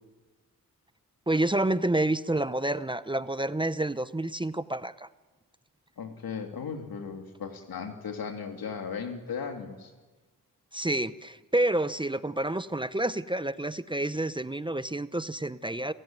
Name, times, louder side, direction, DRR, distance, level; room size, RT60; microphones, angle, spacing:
voice 1, 1.3-5.1 10.7-15.9, right 1 dB, 15° right, 13 dB, 0.7 m, -29 dB
voice 2, 6.0-9.9, left 6 dB, 85° left, 4 dB, 3.2 m, -36 dB
30.0 x 16.5 x 9.3 m, 1.3 s
wide cardioid pair, 95°, 35 cm